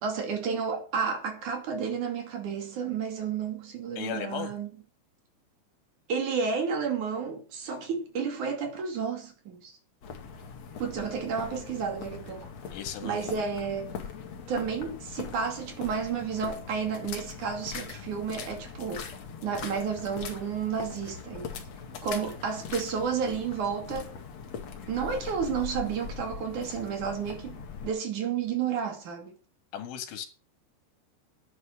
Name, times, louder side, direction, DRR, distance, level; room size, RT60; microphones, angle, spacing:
voice 1, 0.0-4.7 6.1-9.7 10.8-12.5 13.0-14.0 14.5-19.1 19.4-21.5 22.0-24.1 24.9-29.3, right 6 dB, 45° right, 3.5 m, -31 dB
voice 2, 4.0-4.5 12.7-13.4 29.7-30.3, left 9 dB, 85° left, 4.3 m, -36 dB
sound 1, 10.0-27.9, left 6 dB, 45° left, 2.5 m, -41 dB
11.5 x 9.4 x 6.5 m
omnidirectional pair, 5.3 m